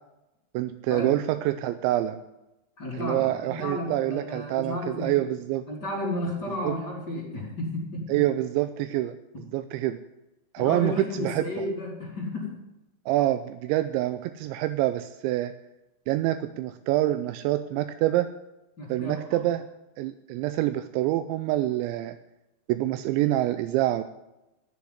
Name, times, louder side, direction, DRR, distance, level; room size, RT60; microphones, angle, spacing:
voice 1, 0.5-2.2 2.9-5.7 6.6-6.8 8.1-10.0 10.5-11.5 13.1-15.5 16.1-18.3 18.9-19.7 20.0-22.2 22.7-24.0, right 15 dB, 85° right, 11 dB, 2.9 m, -26 dB
voice 2, 2.8-5.2 5.7-8.2 10.6-12.6 18.8-19.4, left 1 dB, 25° left, -2 dB, 3.1 m, -33 dB
14.5 x 6.8 x 9.5 m, 0.94 s
omnidirectional pair, 5.3 m